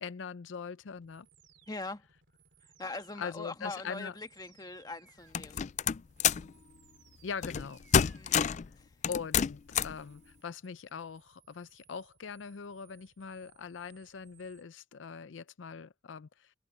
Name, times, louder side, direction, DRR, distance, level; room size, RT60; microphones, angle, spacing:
voice 1, 0.0-1.3 3.2-4.1 7.2-7.8 9.1-16.5, left 6 dB, 90° left, 0.5 m, -42 dB
sound 1, 0.8-14.6, right 7 dB, 70° right, 3.6 m, -65 dB
voice 2, 1.7-2.0 2.8-5.7 8.2-8.5, left 2 dB, 20° left, 1.6 m, -42 dB
sound 2, 5.3-6.5 7.4-7.7 7.9-8.7 9.0-10.0, left 8 dB, 40° left, 0.3 m, -28 dB
head